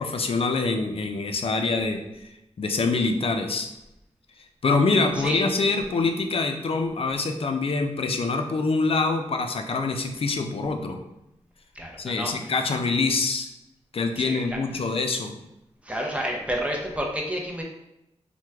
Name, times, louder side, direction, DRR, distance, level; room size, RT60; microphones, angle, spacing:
voice 1, 0.0-2.0 2.6-3.7 4.6-11.0 12.0-13.5 13.9-15.3, left 3 dB, 50° left, 5 dB, 0.4 m, -25 dB
voice 2, 5.1-5.5 11.7-12.5 14.2-14.9 15.8-17.6, equal, 10° right, 0 dB, 0.6 m, -30 dB
3.1 x 2.1 x 3.4 m, 0.90 s
cardioid pair, 65°, 12 cm